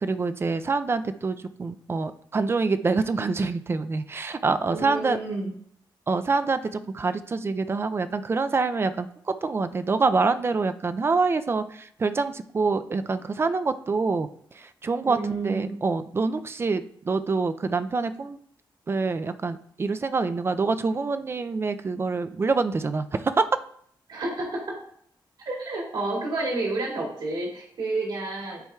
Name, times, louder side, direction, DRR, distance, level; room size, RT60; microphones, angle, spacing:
voice 1, 0.0-5.2 6.1-9.1 9.4-14.3 14.5-15.2 15.4-18.4 18.9-23.4, right 4 dB, 30° right, 11 dB, 0.4 m, -26 dB
voice 2, 4.7-5.5 15.0-15.8 24.1-24.6 25.4-28.6, right 2 dB, 65° right, -3 dB, 2.4 m, -30 dB
10.0 x 4.4 x 2.3 m, 0.65 s
wide cardioid pair, 135°, 8 cm